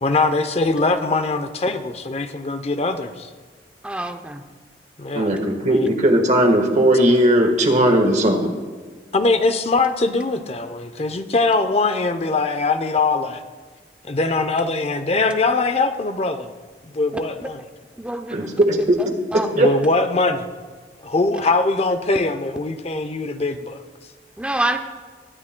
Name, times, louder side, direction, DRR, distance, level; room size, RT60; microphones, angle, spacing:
voice 1, 0.0-3.3 5.0-5.3 5.6-5.9 9.1-13.4 14.0-16.5 16.8-17.6 19.5-20.5 21.0-23.8, left 3 dB, 35° left, 9 dB, 0.7 m, -22 dB
voice 2, 3.8-4.4 17.4-17.5 18.0-18.6 19.0-19.6 24.4-24.8, right 1 dB, 5° right, 5 dB, 0.6 m, -27 dB
voice 3, 5.1-8.5 18.3-19.0 19.6-19.7, right 1 dB, 40° right, 4 dB, 1.4 m, -17 dB
22.0 x 9.9 x 2.2 m, 1.5 s
head